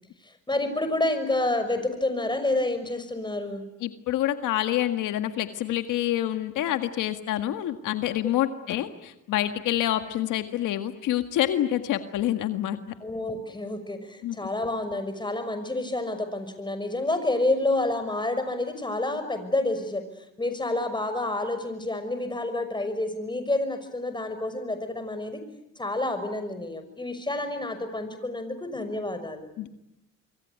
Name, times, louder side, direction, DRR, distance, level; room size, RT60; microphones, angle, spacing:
voice 1, 0.2-3.6 13.0-20.1 20.4-25.4 25.8-29.5, left 2 dB, 15° left, 9 dB, 5.9 m, -29 dB
voice 2, 3.8-12.8 14.2-14.4 29.6-29.7, left 12 dB, 90° left, 8 dB, 1.8 m, -27 dB
26.5 x 23.5 x 9.5 m, 0.85 s
cardioid pair, 90°, 30 cm